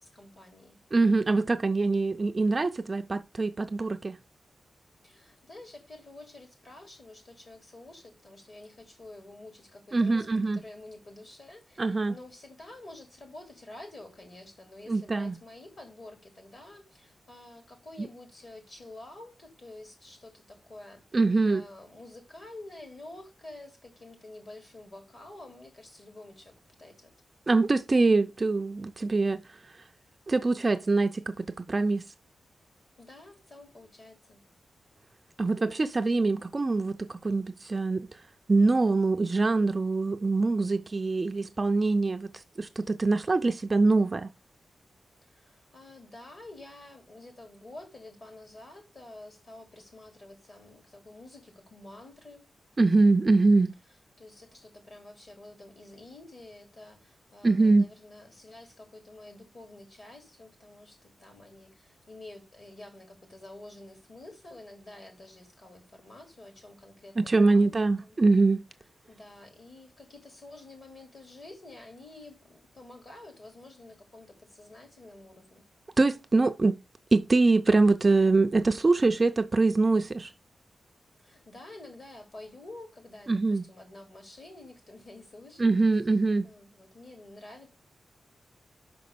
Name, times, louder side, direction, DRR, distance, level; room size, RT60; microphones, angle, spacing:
voice 1, 0.0-0.8 5.0-21.0 21.5-26.5 26.8-27.1 33.0-34.4 45.2-52.5 54.2-68.2 69.1-75.7 81.2-85.9 86.4-87.7, left 2 dB, 40° left, 3.2 m, -49 dB
voice 2, 0.9-4.2 9.9-10.6 11.8-12.2 14.9-15.4 18.0-18.1 21.1-21.6 27.5-29.6 30.3-32.1 35.4-38.1 38.5-44.3 52.8-53.7 57.4-57.9 67.2-68.6 76.0-76.8 77.1-80.3 83.3-83.6 85.6-86.5, right 3 dB, 25° right, 0.5 m, -24 dB
5.9 x 5.2 x 6.6 m
wide cardioid pair, 150°, 0 cm